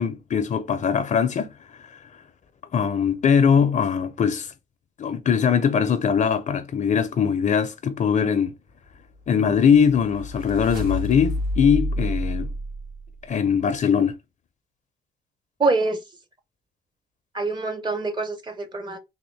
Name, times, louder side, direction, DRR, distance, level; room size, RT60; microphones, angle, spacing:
voice 1, 0.0-1.5 2.7-4.5 5.0-8.5 9.3-12.5 13.3-14.2, left 7 dB, 45° left, 0.5 m, -21 dB
sound 1, 9.2-13.5, left 1 dB, 65° right, 2.2 m, -29 dB
voice 2, 15.6-16.0 17.3-19.0, right 3 dB, 25° right, 0.6 m, -25 dB
3.5 x 2.4 x 3.2 m
cardioid pair, 110°, 17 cm